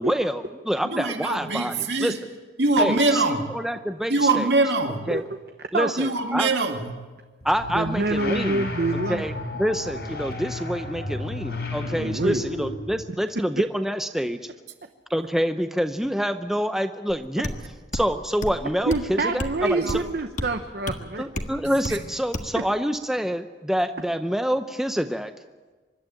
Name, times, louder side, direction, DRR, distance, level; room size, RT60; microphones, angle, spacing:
voice 1, 0.0-2.1 2.8-4.5 5.1-5.2 5.7-6.5 7.4-8.7 9.1-9.3 9.6-14.4 15.1-17.5 17.9-20.0 21.2-25.3, equal, ahead, 8 dB, 0.6 m, -27 dB
voice 2, 0.9-2.2 2.6-3.5 4.1-5.1 6.0-7.0 19.8-20.0 21.9-22.0, right 2 dB, 70° right, 4 dB, 2.2 m, -23 dB
sound 1, 7.4-13.0, left 2 dB, 60° left, 4.9 m, -33 dB
voice 3, 7.7-9.3 12.0-12.4 18.9-21.2, right 2 dB, 55° right, 7 dB, 0.9 m, -26 dB
sound 2, 17.1-17.2 17.4-17.6 17.9-18.1 18.4-18.6 18.9-19.1 19.4-19.6 19.9-20.1 20.4-20.5 20.9-21.0 21.4-21.5 21.8-22.0 22.3-22.5, left 1 dB, 40° left, 1.5 m, -30 dB
25.0 x 12.0 x 8.9 m, 1.3 s
head